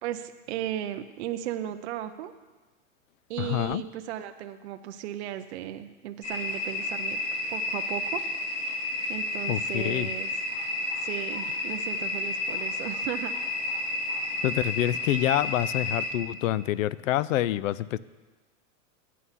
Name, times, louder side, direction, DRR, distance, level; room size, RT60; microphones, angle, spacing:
voice 1, 0.0-2.3 3.3-7.2 7.5-8.2 9.1-10.3 11.0-13.3, right 11 dB, 60° right, 8 dB, 0.6 m, -35 dB
voice 2, 3.4-3.8 9.5-10.1 14.4-18.0, left 13 dB, 80° left, 19 dB, 0.5 m, -27 dB
sound 1, 6.2-16.1, left 2 dB, 35° left, 1.3 m, -31 dB
9.5 x 8.5 x 5.6 m, 1.3 s
supercardioid pair, 160°, 39 cm